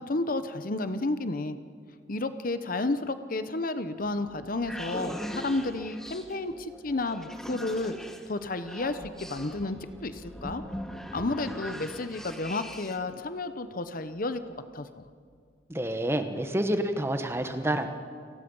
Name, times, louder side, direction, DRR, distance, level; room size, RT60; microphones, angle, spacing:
voice 1, 0.0-1.6 2.1-7.9 8.3-10.6 11.1-14.4 14.7-14.9, left 2 dB, 50° left, 11 dB, 1.0 m, -31 dB
sound 1, 4.1-13.1, equal, 5° left, 1.3 m, -41 dB
voice 2, 15.7-17.9, right 1 dB, 15° right, 7 dB, 1.3 m, -28 dB
29.0 x 19.0 x 5.5 m, 2.2 s
head